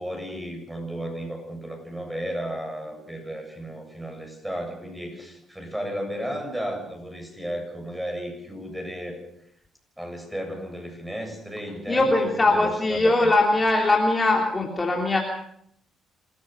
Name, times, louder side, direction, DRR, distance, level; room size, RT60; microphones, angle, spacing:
voice 1, 0.0-9.2 10.0-13.3, equal, 5° right, 3 dB, 7.6 m, -34 dB
voice 2, 11.9-15.2, left 2 dB, 20° left, 0 dB, 3.3 m, -21 dB
27.0 x 14.5 x 6.9 m, 0.72 s
cardioid pair, 90°, 0 cm